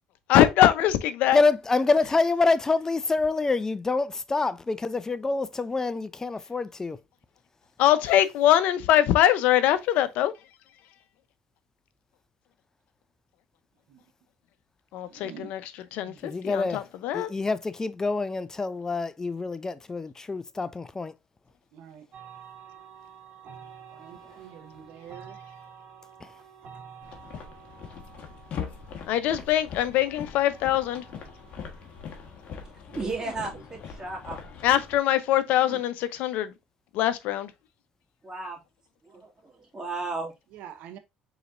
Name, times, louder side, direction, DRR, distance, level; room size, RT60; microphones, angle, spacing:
voice 1, 0.3-1.4 7.8-10.3 14.9-15.6 15.9-17.3 29.1-31.0 34.6-36.5 36.9-37.5, left 12 dB, 75° left, 0.7 m, -22 dB
voice 2, 1.3-7.0 16.2-16.8 17.1-21.1, left 3 dB, 20° left, 0.5 m, -26 dB
voice 3, 15.1-15.5 15.9-16.2 21.7-22.1 23.9-25.4 32.9-33.6 35.6-35.8 40.5-41.0, right 9 dB, 75° right, 1.0 m, -46 dB
sound 1, 22.1-32.8, right 7 dB, 60° right, 2.4 m, -50 dB
sound 2, 27.0-35.0, left 7 dB, 55° left, 1.4 m, -41 dB
voice 4, 33.0-34.4 38.2-38.6 39.0-40.3, right 3 dB, 25° right, 2.3 m, -34 dB
5.0 x 4.1 x 2.5 m
supercardioid pair, 95°, 3 cm